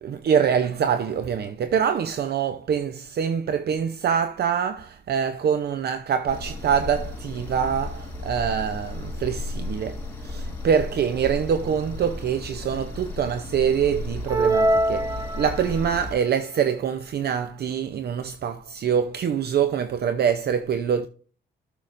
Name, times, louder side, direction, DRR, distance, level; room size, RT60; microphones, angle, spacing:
voice 1, 0.0-21.1, right 7 dB, 55° right, 0.7 m, -25 dB
sound 1, 6.3-16.1, left 2 dB, 10° left, 4.3 m, -34 dB
sound 2, 14.3-15.9, right 1 dB, 20° right, 0.8 m, -23 dB
12.0 x 6.8 x 2.6 m
cardioid pair, 90°, 20 cm